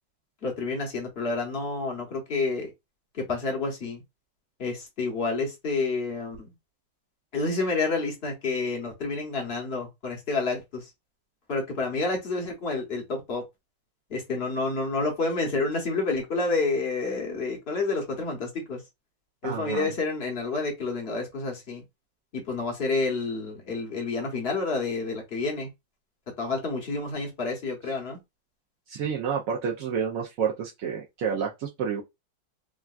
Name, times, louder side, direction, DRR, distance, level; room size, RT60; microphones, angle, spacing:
voice 1, 0.4-2.7 3.1-4.0 4.6-6.5 7.3-10.9 11.5-13.4 14.1-18.8 19.4-21.8 22.3-25.7 26.4-28.2, left 3 dB, 50° left, 0.8 m, -29 dB
voice 2, 19.4-19.9 28.9-32.0, right 7 dB, 85° right, 0.7 m, -29 dB
3.6 x 2.2 x 2.3 m
omnidirectional pair, 2.0 m